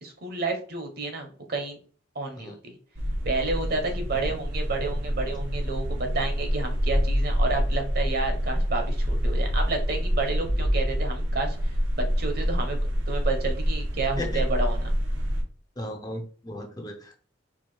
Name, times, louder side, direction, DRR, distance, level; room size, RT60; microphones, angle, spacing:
voice 1, 0.0-1.8 2.1-2.7 3.2-11.7 12.2-12.8 13.1-14.9, right 3 dB, 50° right, 4 dB, 1.0 m, -30 dB
sound 1, 3.0-15.4, equal, 75° right, 1.0 m, -26 dB
voice 2, 15.8-17.2, left 1 dB, 20° left, 3 dB, 0.6 m, -36 dB
4.7 x 2.3 x 4.4 m, 0.42 s
head